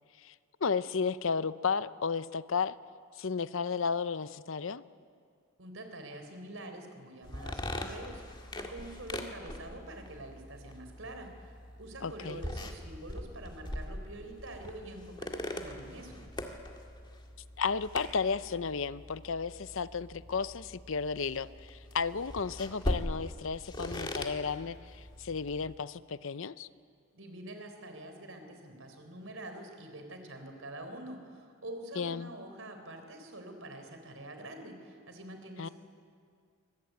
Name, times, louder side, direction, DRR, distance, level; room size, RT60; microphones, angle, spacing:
voice 1, 0.6-2.7 3.2-4.8 12.0-12.4 17.6-24.8 25.2-26.7 32.0-32.3 35.6-35.7, left 5 dB, 65° left, 15 dB, 0.7 m, -33 dB
voice 2, 5.6-11.3 11.8-16.2 27.1-35.7, right 1 dB, 70° right, 6 dB, 4.2 m, -46 dB
sound 1, 7.2-25.8, left 1 dB, 20° left, 1.9 m, -41 dB
24.0 x 22.0 x 9.5 m, 2.2 s
head